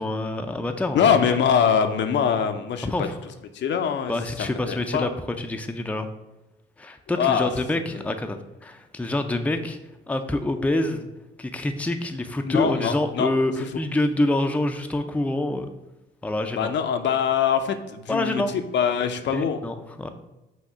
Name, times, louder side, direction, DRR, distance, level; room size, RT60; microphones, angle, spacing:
voice 1, 0.0-1.2 2.8-3.1 4.1-5.1 5.4-6.1 6.8-9.8 10.1-11.1 11.4-15.7 16.2-16.7 18.1-18.5 19.3-20.1, left 1 dB, 5° left, 6 dB, 0.5 m, -26 dB
voice 2, 0.9-3.1 3.5-4.1 4.4-5.1 7.1-7.5 7.9-8.0 12.4-13.3 16.5-18.4 18.7-19.6, left 7 dB, 65° left, 7 dB, 0.6 m, -23 dB
6.1 x 2.8 x 5.6 m, 0.98 s
cardioid pair, 90°, 20 cm